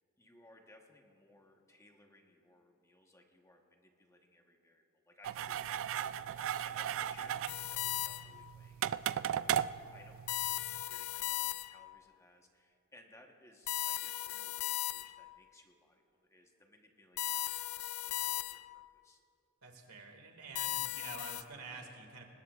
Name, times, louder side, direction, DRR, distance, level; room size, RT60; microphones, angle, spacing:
voice 1, 0.2-19.2, left 1 dB, 15° left, 2 dB, 1.2 m, -63 dB
sound 1, 5.2-10.8, right 10 dB, 60° right, 0.3 m, -37 dB
sound 2, 7.5-8.5 10.3-11.9 13.7-15.3 17.2-18.8 20.6-21.4, left 16 dB, 80° left, 0.4 m, -37 dB
voice 2, 19.6-22.3, right 3 dB, 90° right, 3 dB, 2.1 m, -48 dB
24.5 x 20.0 x 2.5 m, 2.7 s
head